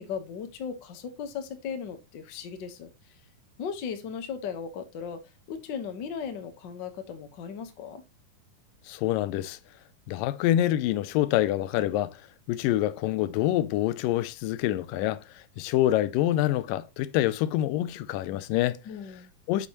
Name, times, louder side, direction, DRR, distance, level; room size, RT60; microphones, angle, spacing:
voice 1, 0.0-3.2 3.6-5.2 5.5-8.0 18.8-19.3, left 7 dB, 70° left, 1.1 m, -37 dB
voice 2, 8.9-9.6 10.1-12.2 12.5-15.2 15.6-18.8 19.5-19.7, left 13 dB, 85° left, 2.3 m, -26 dB
8.3 x 6.7 x 2.9 m
omnidirectional pair, 3.9 m